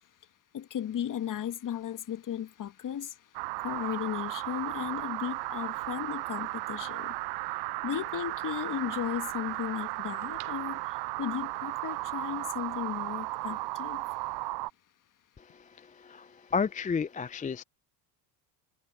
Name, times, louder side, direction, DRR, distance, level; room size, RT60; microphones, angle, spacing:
voice 1, 0.5-3.1 3.6-7.1 7.8-10.8 11.2-14.0, left 10 dB, 40° left, 1.5 m, -35 dB
sound 1, 3.3-14.7, right 21 dB, 55° right, 0.6 m, -35 dB
sound 2, 10.2-11.5 12.0-12.1, right 30 dB, 80° right, 4.7 m, -52 dB
voice 2, 15.4-17.6, left 5 dB, 15° left, 0.5 m, -33 dB
hypercardioid pair, 75°, 48 cm